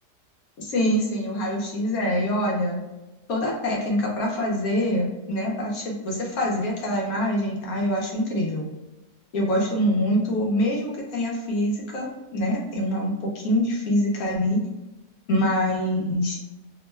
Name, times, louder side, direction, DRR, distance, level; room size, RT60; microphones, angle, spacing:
voice 1, 0.6-2.8 3.3-8.7 9.3-14.6 15.3-16.4, equal, 70° left, -2 dB, 1.1 m, -25 dB
3.0 x 2.1 x 3.2 m, 1.0 s
omnidirectional pair, 1.7 m